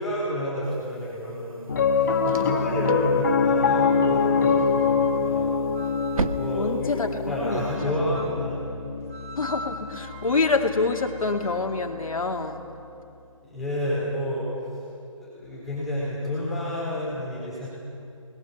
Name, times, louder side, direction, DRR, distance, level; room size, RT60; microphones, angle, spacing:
voice 1, 0.0-5.6 6.3-8.6 13.4-14.8 15.2-17.7, left 1 dB, ahead, -10 dB, 4.0 m, -30 dB
sound 1, 0.6-7.8, right 3 dB, 80° right, 1.1 m, -38 dB
Piano, 1.7-12.2, left 5 dB, 35° left, 1.1 m, -25 dB
voice 2, 2.2-2.8 6.5-7.1 7.4-7.9 9.4-12.6, left 4 dB, 80° left, 4 dB, 2.4 m, -27 dB
sound 2, 3.8-6.6 7.5-8.5 9.1-13.1, right 2 dB, 25° right, 1.3 m, -42 dB
27.0 x 20.5 x 7.0 m, 2.6 s
hypercardioid pair, 165°, 18 cm